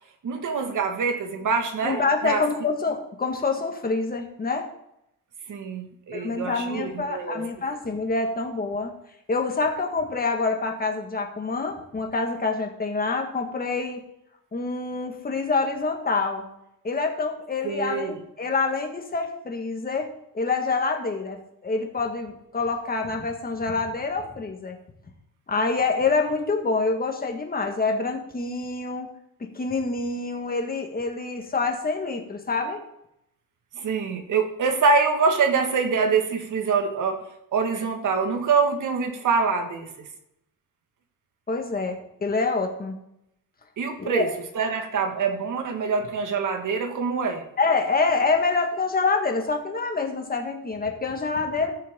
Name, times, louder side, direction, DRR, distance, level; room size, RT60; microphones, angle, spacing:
voice 1, 0.2-2.4 5.5-7.4 17.6-18.2 33.8-37.2 37.5-40.1 43.8-44.3 44.6-47.5, right 5 dB, 55° right, 4 dB, 1.8 m, -25 dB
voice 2, 1.8-4.7 6.1-8.9 9.3-14.0 14.5-16.4 16.8-21.4 21.6-24.8 25.5-29.1 29.4-32.8 41.5-42.9 44.0-44.3 47.6-51.7, left 3 dB, 25° left, 3 dB, 1.7 m, -26 dB
15.0 x 6.4 x 3.8 m, 0.80 s
cardioid pair, 125°, 36 cm